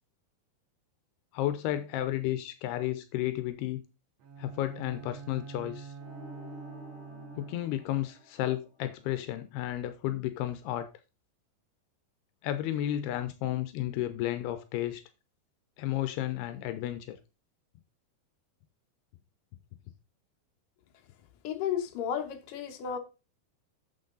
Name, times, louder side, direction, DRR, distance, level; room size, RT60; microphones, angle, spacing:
voice 1, 1.3-3.8 4.4-5.9 7.4-10.9 12.4-15.0 15.8-17.2, left 13 dB, 85° left, 2.7 m, -32 dB
Bowed string instrument, 4.2-7.9, right 5 dB, 90° right, 1.1 m, -46 dB
sound 1, 6.0-9.0, left 2 dB, 45° left, 2.6 m, -50 dB
voice 2, 21.4-23.0, left 8 dB, 65° left, 2.8 m, -33 dB
9.4 x 7.1 x 3.9 m
omnidirectional pair, 4.5 m